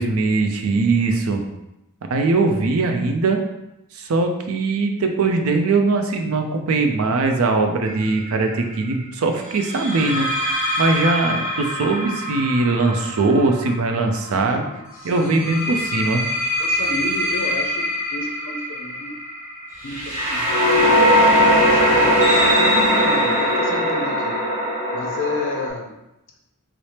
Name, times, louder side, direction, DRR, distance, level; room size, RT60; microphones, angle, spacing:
voice 1, 0.0-1.4 2.1-3.4 3.9-10.3 10.8-14.6 15.0-16.2, right 3 dB, 70° right, 5 dB, 0.5 m, -20 dB
sound 1, 7.9-8.1 9.6-14.4 15.2-25.7, equal, 35° right, 1.4 m, -21 dB
voice 2, 14.3-15.6 16.6-19.2 19.8-22.2 22.6-24.4 24.9-25.9, left 3 dB, 60° left, 1 dB, 0.5 m, -32 dB
3.2 x 2.0 x 4.1 m, 0.90 s
head